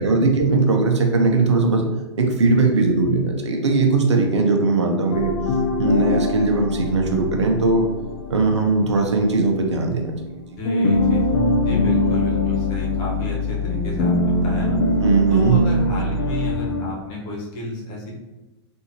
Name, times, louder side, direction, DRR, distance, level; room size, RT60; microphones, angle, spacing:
voice 1, 0.0-1.8 2.2-5.3 5.8-7.9 8.3-10.1 10.5-10.6 15.0-15.6, right 3 dB, 90° right, 2 dB, 0.7 m, -19 dB
sound 1, 5.1-10.3 10.6-16.9, left 2 dB, 65° left, 0.6 m, -23 dB
voice 2, 10.6-14.8 15.3-18.1, left 2 dB, 45° left, -3 dB, 1.2 m, -31 dB
3.7 x 2.6 x 2.9 m, 1.1 s
hypercardioid pair, 110°, 14 cm